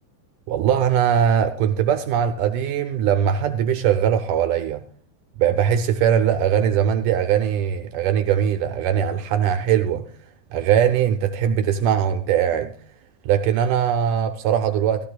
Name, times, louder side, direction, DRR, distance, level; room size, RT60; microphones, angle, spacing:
voice 1, 0.5-4.8 5.4-10.0 10.5-12.7 13.3-15.1, right 9 dB, 75° right, 2.0 m, -20 dB
16.5 x 13.5 x 2.3 m
omnidirectional pair, 4.1 m